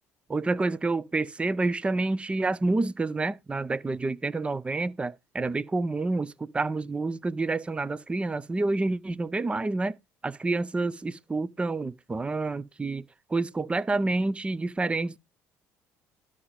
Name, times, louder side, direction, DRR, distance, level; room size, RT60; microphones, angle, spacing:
voice 1, 0.3-10.0 10.2-13.0 13.3-15.2, right 3 dB, 15° right, 0.5 m, -28 dB
12.5 x 5.0 x 3.4 m
supercardioid pair, 95°, 7 cm